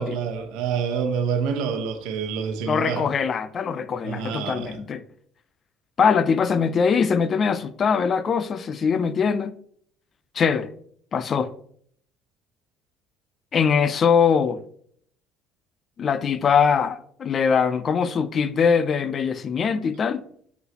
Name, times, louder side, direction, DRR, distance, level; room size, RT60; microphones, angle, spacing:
voice 1, 0.0-3.1 4.0-4.8, right 6 dB, 80° right, 1.1 m, -27 dB
voice 2, 2.6-5.0 6.0-9.5 10.3-10.7 11.1-11.5 13.5-14.6 16.0-20.2, left 6 dB, 30° left, 0.4 m, -22 dB
9.3 x 4.0 x 2.9 m
cardioid pair, 150°, 0 cm